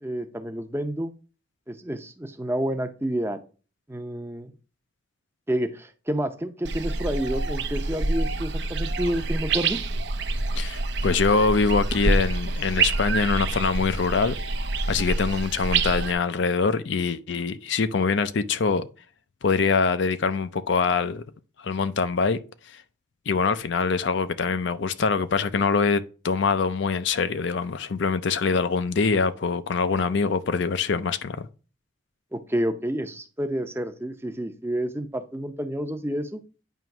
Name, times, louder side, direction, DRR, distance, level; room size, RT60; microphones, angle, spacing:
voice 1, 0.0-1.1 1.7-3.4 3.9-4.5 5.5-9.8 32.3-36.4, right 1 dB, 10° right, 0.6 m, -29 dB
sound 1, 6.6-16.1, right 3 dB, 55° right, 0.6 m, -27 dB
voice 2, 10.6-14.3 14.9-18.9 19.4-21.2 21.6-22.4 23.3-31.5, left 4 dB, 65° left, 0.5 m, -24 dB
9.1 x 3.1 x 5.9 m
head